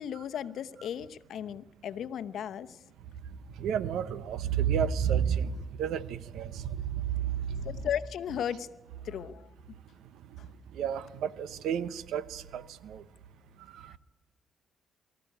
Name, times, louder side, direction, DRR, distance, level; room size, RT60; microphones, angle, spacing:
voice 1, 0.0-2.8 7.6-8.7 9.0-9.5 13.9-14.0, left 9 dB, 70° left, 11 dB, 0.9 m, -35 dB
voice 2, 3.6-7.8 10.7-13.0 13.7-14.0, right 8 dB, 80° right, 16 dB, 0.9 m, -31 dB
23.5 x 14.0 x 9.3 m, 1.2 s
cardioid pair, 90°, 0 cm